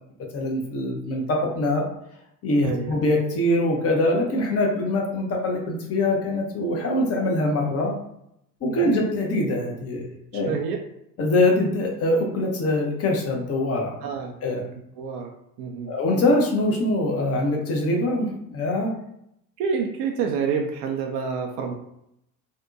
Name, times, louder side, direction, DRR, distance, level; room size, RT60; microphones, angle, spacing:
voice 1, 0.3-1.9 2.4-7.9 8.6-10.6 11.2-14.0 14.4-14.6 15.9-18.9, left 1 dB, 30° left, 0 dB, 0.7 m, -23 dB
voice 2, 2.6-3.0 8.6-9.0 10.4-10.8 14.0-14.7 15.0-15.3 15.6-15.9 19.6-21.7, right 6 dB, 45° right, 2 dB, 0.4 m, -28 dB
2.6 x 2.1 x 2.4 m, 0.78 s
figure-of-eight pair, 60°, 50 cm